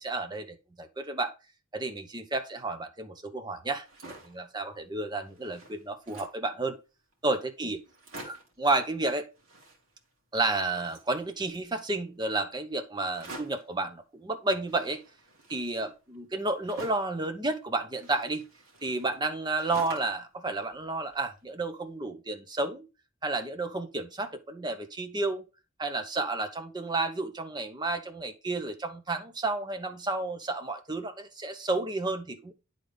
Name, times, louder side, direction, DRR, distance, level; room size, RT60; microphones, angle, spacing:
voice 1, 0.0-1.3 1.7-6.8 7.2-7.8 8.2-9.3 10.3-15.0 15.5-18.5 18.8-22.9 23.2-25.4 25.8-32.5, right 2 dB, 20° right, 0.7 m, -31 dB
sound 1, 3.7-4.4 4.9-5.0 5.2-6.5 7.1-7.2 7.4-7.5 7.8-8.6 9.3-10.1 10.4-11.7 13.1-13.7 14.7-17.2 17.9-20.3 20.6-21.5, right 2 dB, 85° right, 2.1 m, -48 dB
9.5 x 3.9 x 3.3 m
head